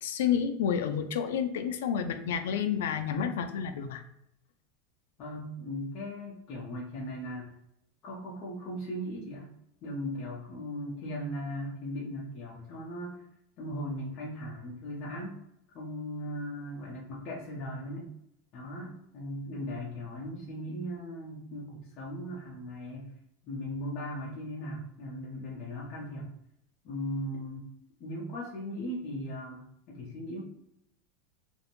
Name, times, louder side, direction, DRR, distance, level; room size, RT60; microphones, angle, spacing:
voice 1, 0.0-4.0, left 8 dB, 85° left, 8 dB, 0.3 m, -30 dB
voice 2, 5.2-7.5 8.0-9.5 9.8-13.2 13.6-15.4 15.7-18.1 18.5-23.1 23.4-26.3 26.8-27.7 28.0-30.4, equal, 35° left, -5 dB, 0.6 m, -38 dB
2.5 x 2.1 x 2.9 m, 0.79 s
supercardioid pair, 160°, 0 cm